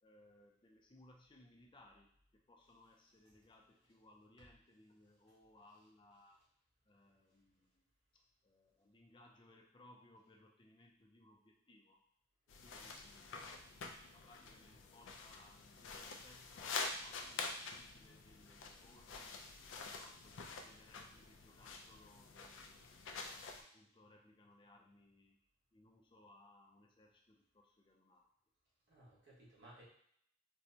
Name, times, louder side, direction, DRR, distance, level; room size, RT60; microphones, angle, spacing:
voice 1, 0.0-6.4 6.9-7.9 8.1-12.0 12.6-19.4 19.9-22.8 23.2-25.4 25.7-28.3, left 1 dB, 25° left, 0 dB, 0.5 m, -65 dB
voice 2, 7.0-7.4 28.9-29.8, right 1 dB, 65° right, -7 dB, 1.3 m, -61 dB
sound 1, 12.5-23.6, left 4 dB, 85° left, 0.4 m, -47 dB
4.2 x 2.2 x 2.7 m, 0.66 s
head